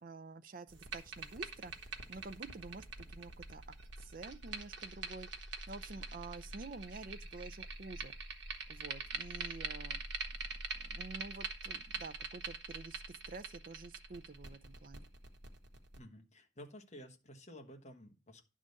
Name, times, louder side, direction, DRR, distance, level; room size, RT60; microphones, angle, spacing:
voice 1, 0.0-3.6 4.0-8.1 8.7-10.0 10.7-15.1, right 3 dB, 45° right, 0.5 m, -49 dB
sound 1, 0.7-16.0, right 4 dB, 65° right, 1.3 m, -44 dB
voice 2, 15.9-18.4, equal, 35° left, 1.3 m, -53 dB
11.0 x 3.8 x 6.5 m
head